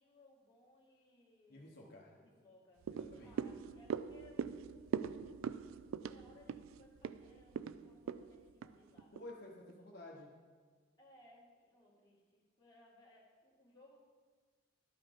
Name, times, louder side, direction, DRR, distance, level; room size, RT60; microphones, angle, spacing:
voice 1, 0.0-5.2 5.8-9.1 11.0-14.0, left 1 dB, 20° left, -5 dB, 1.9 m, -65 dB
voice 2, 1.5-2.1 2.9-3.3 9.1-10.3, left 1 dB, 50° left, -3 dB, 0.9 m, -52 dB
sound 1, 2.8-9.3 9.7-9.8, right 7 dB, 85° right, 0.3 m, -42 dB
12.0 x 5.6 x 5.1 m, 1.5 s
head